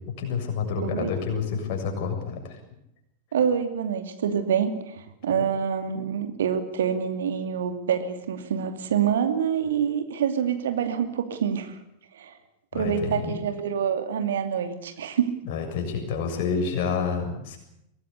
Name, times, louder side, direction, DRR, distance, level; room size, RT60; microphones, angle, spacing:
voice 1, 0.0-2.6 12.7-13.4 15.4-17.6, left 5 dB, 45° left, 3 dB, 7.0 m, -29 dB
voice 2, 0.8-1.1 3.3-11.8 12.1-12.4 12.7-15.3, right 8 dB, 60° right, 8 dB, 2.7 m, -26 dB
23.5 x 18.5 x 8.3 m, 0.79 s
figure-of-eight pair, 90°, 0 cm